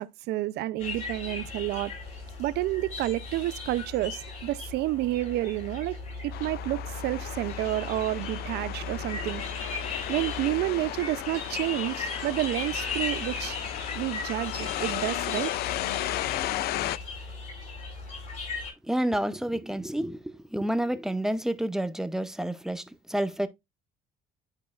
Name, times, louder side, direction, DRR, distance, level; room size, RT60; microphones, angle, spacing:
voice 1, 0.0-1.9 2.4-6.0 6.2-9.4 10.1-13.6 13.9-15.5, right 16 dB, 75° right, 0.5 m, -30 dB
sound 1, 0.8-18.7, left 3 dB, 50° left, 5.0 m, -37 dB
sound 2, 6.3-17.0, left 14 dB, 70° left, 0.4 m, -35 dB
voice 2, 18.8-23.5, right 1 dB, 5° right, 0.7 m, -29 dB
10.5 x 4.6 x 2.4 m
cardioid pair, 110°, 17 cm